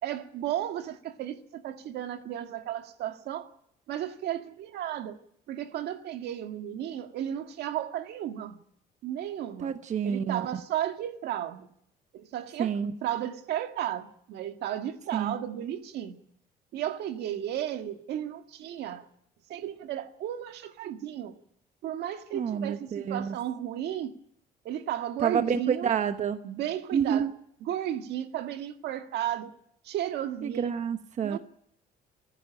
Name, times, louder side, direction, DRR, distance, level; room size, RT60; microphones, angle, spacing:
voice 1, 0.0-3.5 3.9-5.2 5.5-8.6 9.0-9.7 10.0-11.7 12.1-16.2 16.7-19.1 19.5-21.4 21.8-24.1 24.7-25.9 26.4-27.3 27.6-29.5 29.8-30.8 31.2-31.4, right 11 dB, 75° right, 1.8 m, -34 dB
voice 2, 9.6-10.5 12.6-12.9 15.1-15.3 22.3-23.4 25.2-26.4 26.9-27.3 30.4-31.4, right 7 dB, 45° right, 1.1 m, -28 dB
28.5 x 11.0 x 8.9 m
cardioid pair, 110°, 17 cm